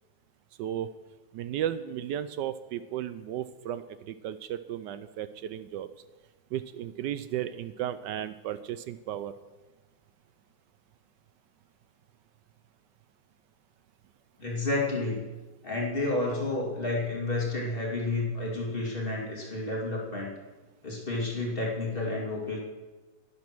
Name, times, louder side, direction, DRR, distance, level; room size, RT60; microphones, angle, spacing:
voice 1, 1.3-5.9 6.5-9.3, right 11 dB, 75° right, 13 dB, 1.1 m, -34 dB
voice 2, 14.4-15.2 15.6-20.3 20.8-22.6, left 2 dB, 25° left, -3 dB, 2.7 m, -30 dB
11.0 x 10.5 x 6.1 m, 1.2 s
omnidirectional pair, 2.1 m